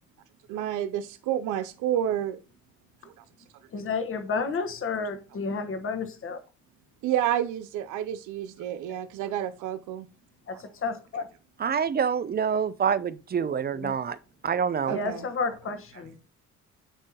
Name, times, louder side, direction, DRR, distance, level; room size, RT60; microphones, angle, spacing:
voice 1, 0.5-2.4 3.1-3.2 7.0-10.1 10.5-10.6 14.9-15.3, right 11 dB, 85° right, 0.5 m, -29 dB
voice 2, 3.7-6.4 10.5-11.3 13.8-13.9 14.9-16.1, left 4 dB, 45° left, 1.2 m, -31 dB
voice 3, 11.6-14.2 14.4-15.0, right 7 dB, 30° right, 0.5 m, -26 dB
9.8 x 3.6 x 2.9 m
cardioid pair, 90°, 30 cm